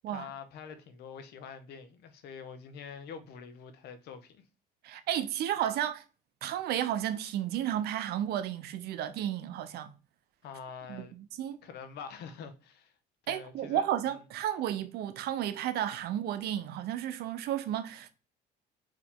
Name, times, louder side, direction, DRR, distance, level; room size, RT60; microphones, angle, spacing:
voice 1, 0.1-4.4 10.4-11.1 11.6-12.9 13.2-13.9, left 6 dB, 75° left, 0.8 m, -45 dB
voice 2, 4.8-6.0 6.4-9.9 10.9-11.6 13.3-18.1, right 11 dB, 70° right, 0.6 m, -33 dB
4.5 x 2.9 x 3.6 m
cardioid pair, 110°, 17 cm